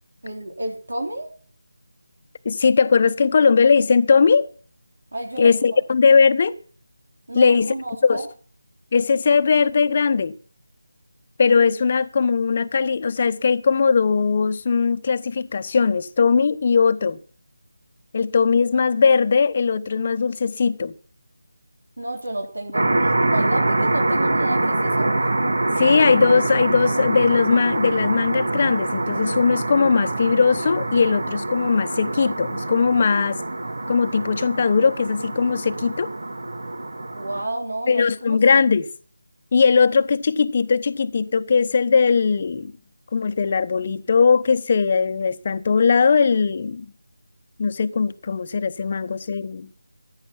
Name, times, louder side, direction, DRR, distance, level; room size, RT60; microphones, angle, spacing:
voice 1, 0.2-1.3 5.1-5.5 7.3-8.3 22.0-25.1 37.1-38.4, right 1 dB, 85° right, 3.6 m, -30 dB
voice 2, 2.4-4.5 5.4-6.5 7.3-7.7 8.0-8.2 8.9-10.3 11.4-17.2 18.1-20.9 25.8-33.4 33.9-36.1 37.9-38.9 39.5-42.7 43.1-46.9 47.6-49.7, left 5 dB, 35° left, 1.0 m, -19 dB
sound 1, 22.7-37.4, right 2 dB, 65° right, 1.9 m, -24 dB
15.0 x 10.5 x 6.0 m
figure-of-eight pair, 170°, 0 cm